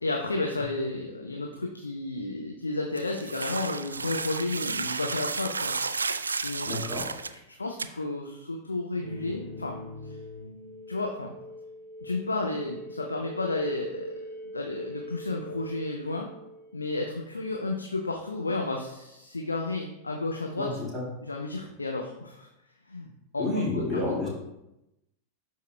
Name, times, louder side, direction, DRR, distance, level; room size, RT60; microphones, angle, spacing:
voice 1, 0.0-5.7 6.3-6.8 7.3-9.8 10.0-10.2 10.9-11.3 12.0-14.1 14.5-16.3 16.7-20.8 21.2-22.5 22.9-23.1 23.3-24.3, left 2 dB, 80° left, 2 dB, 0.6 m, -32 dB
sound 1, 3.0-7.4 7.8-7.9, right 4 dB, 75° right, 0.3 m, -32 dB
voice 2, 6.7-7.1 20.6-21.0 23.4-24.3, left 2 dB, 10° left, -5 dB, 2.0 m, -29 dB
sound 2, 9.0-16.9, equal, 55° left, 2.2 m, -42 dB
11.5 x 4.7 x 2.2 m, 0.90 s
figure-of-eight pair, 90°, 0 cm